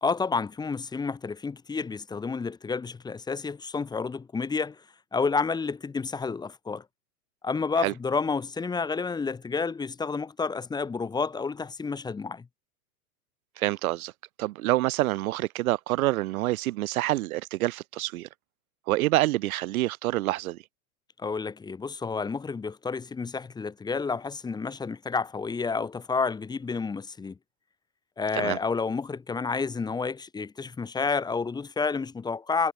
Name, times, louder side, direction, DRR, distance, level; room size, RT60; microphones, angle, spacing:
voice 1, 0.0-4.8 5.1-6.8 7.4-12.5 21.2-27.4 28.2-32.7, left 4 dB, 10° left, 1.3 m, -30 dB
voice 2, 13.6-14.1 14.4-18.3 18.9-20.6 28.4-28.6, right 17 dB, 70° right, 0.6 m, -27 dB
hypercardioid pair, 140°, 45 cm